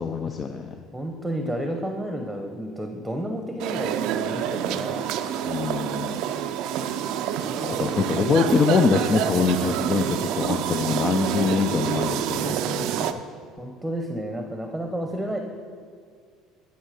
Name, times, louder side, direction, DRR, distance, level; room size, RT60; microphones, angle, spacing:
voice 1, 0.0-0.8 5.4-6.2 7.6-13.1, left 5 dB, 35° left, 7 dB, 0.5 m, -24 dB
voice 2, 0.9-5.0 7.4-8.0 11.5-11.7 13.6-15.4, right 1 dB, 5° right, 3 dB, 0.8 m, -31 dB
sound 1, 3.6-13.1, right 9 dB, 70° right, 0.4 m, -27 dB
10.0 x 5.5 x 4.9 m, 2.1 s
supercardioid pair, 95°, 0 cm